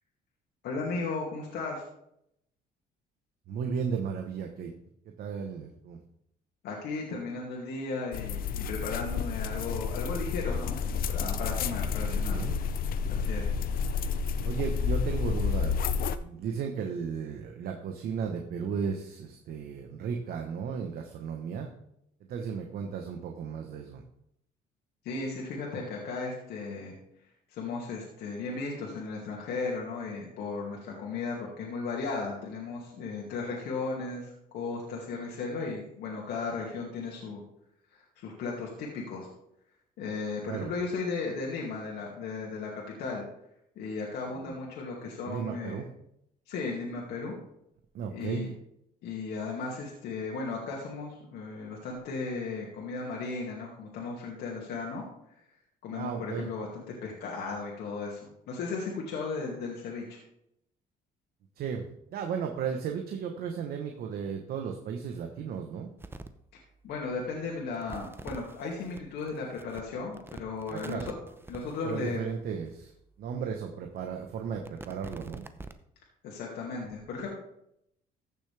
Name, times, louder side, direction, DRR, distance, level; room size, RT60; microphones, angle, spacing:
voice 1, 0.6-1.8 6.6-12.4 13.1-13.5 25.0-26.9 27.5-37.4 38.2-39.3 40.0-42.7 43.0-43.2 43.8-45.8 46.5-47.4 48.1-48.5 49.0-55.0 55.8-60.2 66.8-71.1 71.5-72.2 76.2-77.3, left 4 dB, 80° left, -3 dB, 2.3 m, -35 dB
voice 2, 3.5-4.7 5.0-6.0 12.0-12.6 14.4-15.9 16.2-21.7 22.3-24.0 40.5-40.7 44.3-44.5 45.2-45.9 47.9-48.4 55.9-56.5 61.5-65.9 70.7-71.1 71.5-75.4, right 6 dB, 65° right, 3 dB, 1.2 m, -35 dB
sound 1, 8.1-16.2, left 6 dB, 60° left, 0.7 m, -30 dB
sound 2, 66.0-66.3 66.9-67.0 67.6-72.7 73.3-73.4 74.0-75.8, right 3 dB, 15° right, 0.7 m, -46 dB
14.5 x 7.0 x 3.5 m, 0.77 s
cardioid pair, 110°, 17 cm